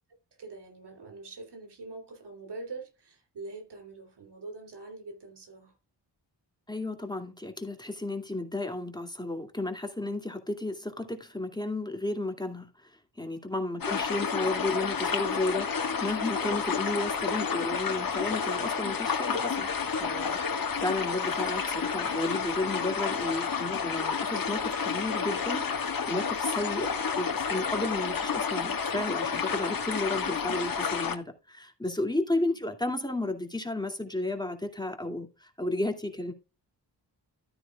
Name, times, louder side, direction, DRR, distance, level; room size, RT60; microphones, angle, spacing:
voice 1, 0.4-5.7 13.7-14.0 20.2-20.8 32.3-32.7, right 3 dB, 70° right, 3.1 m, -44 dB
voice 2, 6.7-19.7 20.0-20.4 20.8-26.9 27.2-36.3, left 2 dB, 10° left, 2.4 m, -33 dB
sound 1, 13.8-31.2, left 6 dB, 55° left, 1.7 m, -30 dB
13.5 x 9.3 x 2.4 m
cardioid pair, 65°, 42 cm